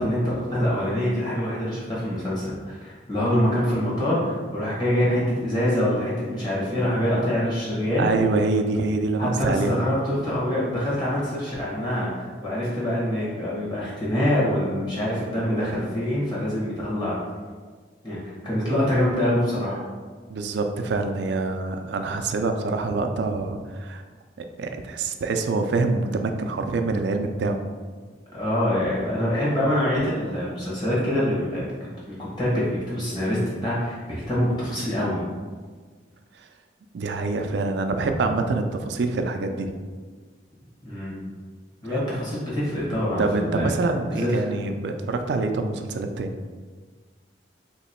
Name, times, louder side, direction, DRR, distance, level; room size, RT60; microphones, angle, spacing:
voice 1, 0.0-8.2 9.2-17.2 18.0-19.8 28.3-31.7 32.1-35.2 40.8-41.2 41.8-43.7 44.1-44.3, equal, 25° left, -8 dB, 1.3 m, -25 dB
voice 2, 8.0-9.8 20.3-24.0 24.4-27.6 36.4-36.5 36.9-39.8 43.2-46.4, right 3 dB, 70° right, 6 dB, 0.3 m, -25 dB
3.0 x 2.9 x 4.2 m, 1.5 s
head